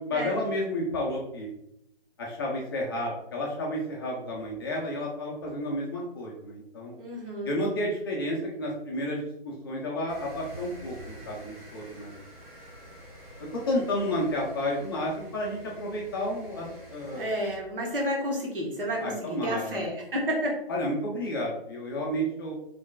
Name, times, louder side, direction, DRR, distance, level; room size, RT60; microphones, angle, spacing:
voice 1, 0.0-1.5 2.2-6.9 7.4-12.2 13.5-17.2 18.9-19.9 20.7-22.5, left 1 dB, 25° left, -3 dB, 0.5 m, -31 dB
voice 2, 7.0-7.6 17.1-20.6, equal, 65° right, -2 dB, 1.2 m, -31 dB
sound 1, 10.1-17.6, right 1 dB, 40° right, 1.1 m, -47 dB
3.4 x 3.2 x 2.3 m, 0.81 s
hypercardioid pair, 150°, 29 cm